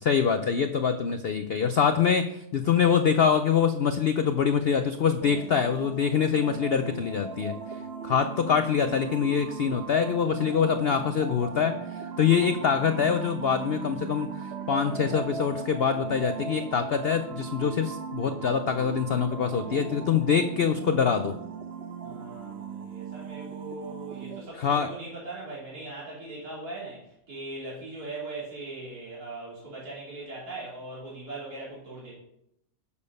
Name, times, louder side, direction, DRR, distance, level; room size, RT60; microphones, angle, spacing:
voice 1, 0.0-7.5 8.0-21.3 24.6-24.9, left 7 dB, 80° left, 8 dB, 0.5 m, -25 dB
sound 1, 5.2-24.4, right 6 dB, 50° right, 0.9 m, -38 dB
voice 2, 22.0-32.1, right 2 dB, 65° right, -7 dB, 3.7 m, -40 dB
8.3 x 7.1 x 5.3 m, 0.78 s
omnidirectional pair, 1.7 m